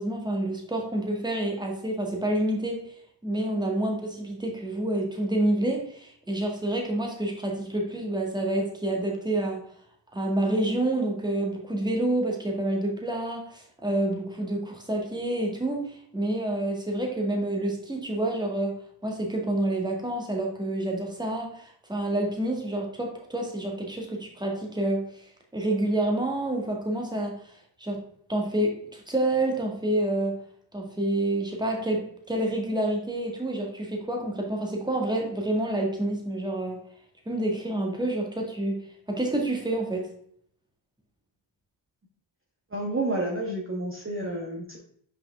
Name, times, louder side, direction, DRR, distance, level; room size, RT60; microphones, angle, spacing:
voice 1, 0.0-2.9 3.2-9.6 10.1-25.2 25.5-27.3 27.8-28.0 28.3-30.4 30.7-36.8 37.3-38.8 39.1-40.1, right 1 dB, 10° right, 1 dB, 1.9 m, -28 dB
voice 2, 42.7-44.8, right 2 dB, 25° right, -2 dB, 1.5 m, -30 dB
5.7 x 5.1 x 3.6 m, 0.64 s
cardioid pair, 65°, 48 cm